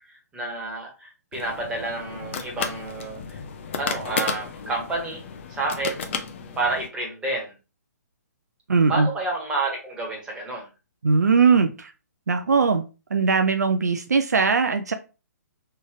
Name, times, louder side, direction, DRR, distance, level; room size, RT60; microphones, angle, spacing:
voice 1, 0.3-3.4 3.8-5.2 5.5-6.0 6.5-7.5 8.9-10.7, right 2 dB, 10° right, -2 dB, 1.5 m, -29 dB
sound 1, 1.3-6.9, left 6 dB, 40° left, 0.6 m, -33 dB
voice 2, 8.7-9.1 11.0-11.9 12.3-12.8 13.1-14.9, right 5 dB, 65° right, 7 dB, 0.5 m, -20 dB
3.8 x 3.3 x 3.7 m, 0.30 s
figure-of-eight pair, 125°, 9 cm